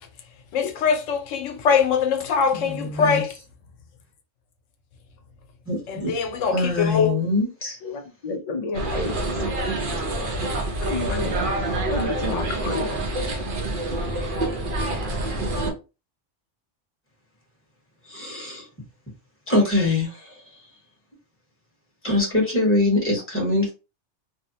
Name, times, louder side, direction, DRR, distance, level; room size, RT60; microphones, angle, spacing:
voice 1, 0.5-3.3 5.9-7.2, left 6 dB, 85° left, 0.9 m, -22 dB
voice 2, 2.5-3.2 5.7-6.1 6.5-7.8 18.1-18.7 19.5-20.3 22.0-23.7, left 2 dB, 10° left, 0.9 m, -23 dB
voice 3, 7.8-9.8 10.8-12.9, left 3 dB, 70° left, 0.3 m, -31 dB
sound 1, 8.7-15.7, right 2 dB, 55° right, 0.7 m, -26 dB
2.6 x 2.1 x 2.6 m
omnidirectional pair, 1.3 m